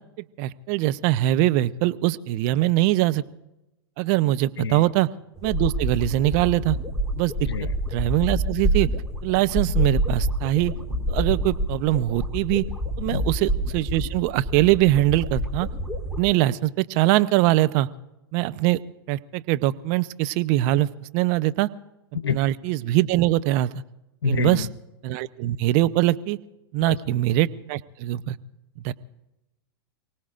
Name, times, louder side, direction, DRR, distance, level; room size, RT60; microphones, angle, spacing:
voice 1, 0.4-3.2 4.0-5.1 5.4-6.8 7.2-7.3 7.6-8.9 9.2-10.7 11.1-12.6 13.0-15.7 16.2-17.9 18.3-18.8 19.1-21.7 22.3-23.7 24.2-24.7 25.0-26.4 26.7-28.4 28.8-28.9, right 16 dB, 45° right, 13 dB, 0.8 m, -22 dB
sound 1, 5.4-16.2, equal, ahead, 3.2 m, -27 dB
voice 2, 24.2-24.7 26.8-27.0, left 5 dB, 85° left, 13 dB, 1.0 m, -26 dB
29.0 x 18.5 x 2.5 m, 0.94 s
hypercardioid pair, 105°, 13 cm